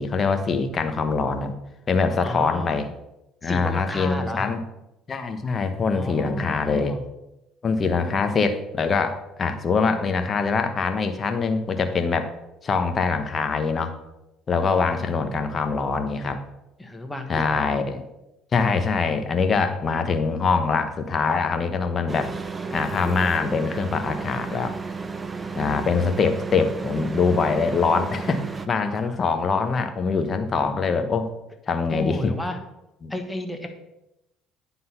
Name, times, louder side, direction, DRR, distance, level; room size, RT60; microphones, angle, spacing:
voice 1, 0.0-1.5 1.9-2.9 3.4-4.6 5.1-6.9 7.6-12.3 12.6-13.9 14.5-16.4 17.3-18.0 18.5-22.3 22.7-24.7 25.6-31.3 31.7-32.3 33.0-33.1, left 4 dB, 35° left, 8 dB, 1.0 m, -23 dB
voice 2, 2.2-2.9 3.4-4.5 5.9-7.1 16.8-17.7 28.7-29.2 31.9-32.6 33.1-33.7, left 1 dB, 10° left, 5 dB, 1.3 m, -33 dB
sound 1, 22.1-28.7, right 4 dB, 25° right, 0.6 m, -33 dB
9.8 x 3.9 x 5.7 m, 0.91 s
supercardioid pair, 85°, 0 cm